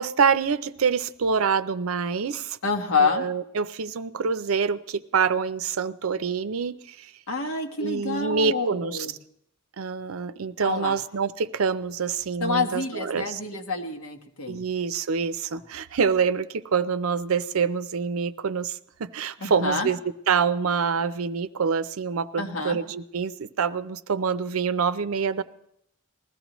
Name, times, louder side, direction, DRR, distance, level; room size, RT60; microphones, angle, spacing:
voice 1, 0.0-2.6 3.0-7.1 7.8-9.1 9.8-13.4 14.5-20.0 20.3-25.4, right 6 dB, 90° right, 14 dB, 0.5 m, -26 dB
voice 2, 2.6-3.3 7.3-9.1 10.6-11.0 12.4-14.6 19.4-19.9 22.4-22.8, left 4 dB, 85° left, 3 dB, 1.4 m, -27 dB
20.0 x 15.0 x 3.1 m, 0.74 s
head